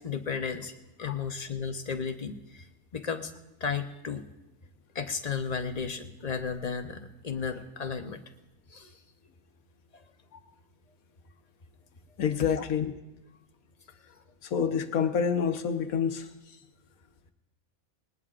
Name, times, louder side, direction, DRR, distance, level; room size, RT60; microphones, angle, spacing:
voice 1, 0.0-2.7 2.9-3.3 3.6-4.2 4.9-8.2 8.7-9.0 9.9-10.0 12.6-12.7, left 6 dB, 35° left, 6 dB, 0.8 m, -34 dB
voice 2, 12.2-12.9 14.4-16.6, left 7 dB, 80° left, 7 dB, 1.3 m, -28 dB
19.5 x 19.5 x 2.5 m, 0.98 s
omnidirectional pair, 1.5 m